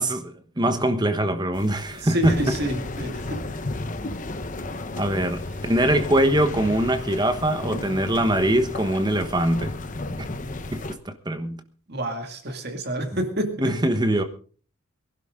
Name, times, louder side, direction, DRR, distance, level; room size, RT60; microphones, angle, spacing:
voice 1, 0.0-2.4 5.0-9.7 10.7-11.6 13.6-14.2, right 1 dB, 20° right, 1.1 m, -23 dB
sound 1, 1.5-10.9, left 2 dB, 35° left, 1.0 m, -33 dB
voice 2, 1.9-3.4 11.9-13.8, right 1 dB, 50° right, 2.1 m, -29 dB
22.5 x 12.0 x 3.7 m
head